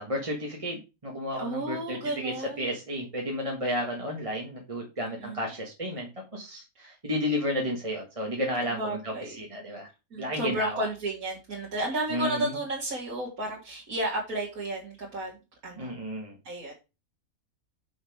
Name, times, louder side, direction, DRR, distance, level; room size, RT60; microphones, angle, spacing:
voice 1, 0.0-9.9 10.2-10.9 12.1-12.6 15.7-16.4, equal, 25° right, 0 dB, 1.5 m, -32 dB
voice 2, 1.4-2.6 5.0-5.4 8.8-9.4 10.1-15.4 15.6-16.0 16.4-16.7, right 1 dB, 80° right, -4 dB, 2.4 m, -32 dB
6.4 x 6.1 x 4.8 m, 0.28 s
omnidirectional pair, 1.5 m